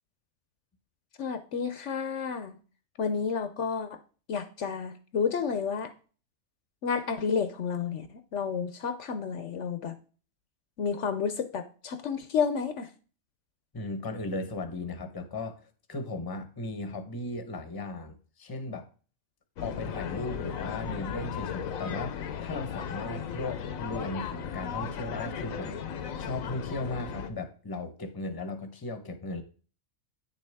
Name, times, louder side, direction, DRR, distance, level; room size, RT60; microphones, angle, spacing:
voice 1, 1.2-2.6 3.0-4.0 4.3-5.9 6.8-10.0 10.8-12.9, left 6 dB, 65° left, 1.0 m, -31 dB
voice 2, 13.7-15.6 15.9-18.9 19.6-25.8 26.2-29.4, left 2 dB, 20° left, 0.9 m, -36 dB
sound 1, 19.6-27.3, left 7 dB, 80° left, 1.2 m, -36 dB
9.3 x 6.9 x 3.5 m
omnidirectional pair, 1.4 m